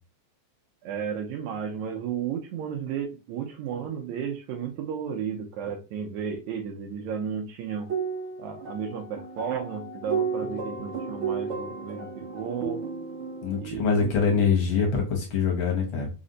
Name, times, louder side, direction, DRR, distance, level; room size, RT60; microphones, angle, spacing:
voice 1, 0.8-7.9 8.4-12.8 13.6-14.9, right 7 dB, 80° right, 3 dB, 1.8 m, -33 dB
sound 1, 7.7-13.6, right 5 dB, 60° right, 1.5 m, -33 dB
voice 2, 13.4-16.1, left 5 dB, 75° left, 1 dB, 1.2 m, -24 dB
5.0 x 2.1 x 3.8 m, 0.31 s
omnidirectional pair, 3.4 m